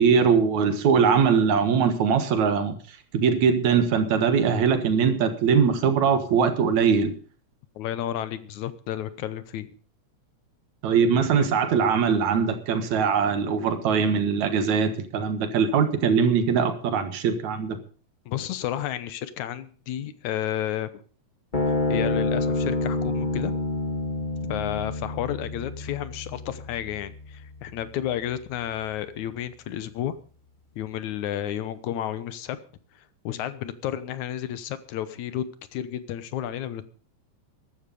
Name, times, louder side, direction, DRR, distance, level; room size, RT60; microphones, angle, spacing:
voice 1, 0.0-2.8 3.1-7.1 10.8-17.8, right 6 dB, 75° right, 9 dB, 2.9 m, -21 dB
voice 2, 7.8-9.7 11.4-11.5 18.3-20.9 21.9-23.5 24.5-30.1 30.8-32.6 33.2-35.4 35.7-36.8, left 11 dB, 90° left, 14 dB, 2.4 m, -31 dB
sound 1, 21.5-28.2, left 2 dB, 20° left, 1.4 m, -28 dB
14.5 x 12.0 x 5.3 m, 0.40 s
omnidirectional pair, 3.3 m